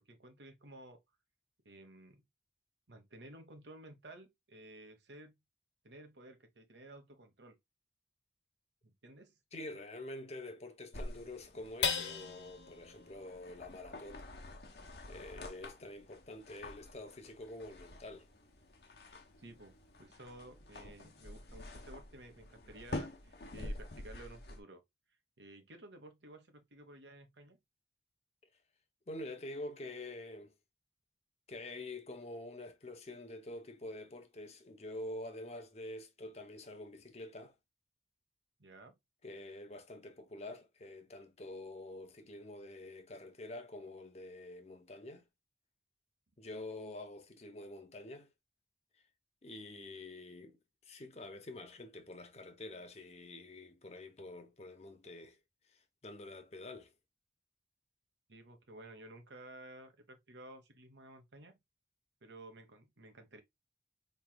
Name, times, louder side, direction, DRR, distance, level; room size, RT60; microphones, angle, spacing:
voice 1, 0.1-1.0 1.6-2.2 2.9-5.3 5.8-7.6 8.8-9.3 19.4-24.8 25.4-27.6 38.6-39.0 58.3-61.6 62.2-63.4, right 1 dB, 85° right, 1.0 m, -54 dB
voice 2, 9.5-14.3 15.1-18.3 29.1-30.5 31.5-37.5 39.2-45.2 46.4-48.3 49.4-50.6 50.8-55.4 55.7-56.9, left 2 dB, 35° left, 0.8 m, -47 dB
sound 1, 10.9-24.6, left 1 dB, 65° left, 1.0 m, -48 dB
sound 2, 11.8-18.5 19.0-19.1 19.5-20.0, left 6 dB, 90° left, 1.1 m, -43 dB
4.5 x 3.2 x 2.2 m
head